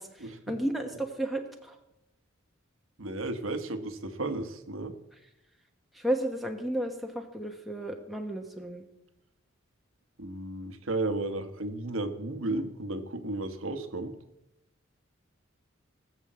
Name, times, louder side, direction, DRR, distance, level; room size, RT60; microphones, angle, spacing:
voice 1, 0.0-1.8 5.9-8.8, right 1 dB, ahead, 2 dB, 1.0 m, -33 dB
voice 2, 3.0-5.0 10.2-14.1, right 2 dB, 75° right, 10 dB, 1.3 m, -33 dB
18.0 x 7.4 x 7.5 m, 0.91 s
head